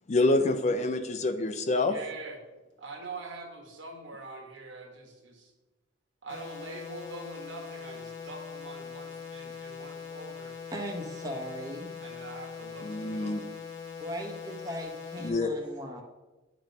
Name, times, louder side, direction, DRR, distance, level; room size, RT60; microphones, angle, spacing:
voice 1, 0.1-1.9 12.8-13.4 15.2-15.5, left 2 dB, 35° left, 8 dB, 0.5 m, -26 dB
voice 2, 1.8-2.4 2.8-5.5 6.2-10.5 12.0-13.4, right 3 dB, 70° right, 1 dB, 1.5 m, -44 dB
sound 1, 6.3-15.3, left 6 dB, 75° left, 1.1 m, -42 dB
voice 3, 10.7-11.9 14.0-16.0, equal, 20° right, 0 dB, 1.0 m, -38 dB
8.9 x 3.1 x 5.2 m, 1.1 s
head